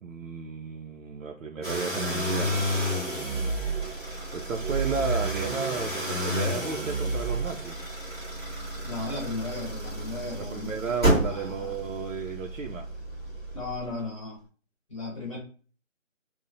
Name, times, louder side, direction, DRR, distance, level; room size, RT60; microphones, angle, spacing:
voice 1, 0.0-2.6 4.3-7.8 10.4-12.9, right 5 dB, 80° right, 2 dB, 0.5 m, -33 dB
sound 1, 1.6-14.0, right 1 dB, 20° right, 1.0 m, -30 dB
voice 2, 8.8-10.7 11.0-11.8 13.5-14.4 14.9-15.4, left 2 dB, 25° left, -4 dB, 1.0 m, -35 dB
2.9 x 2.0 x 2.4 m, 0.39 s
figure-of-eight pair, 170°, 39 cm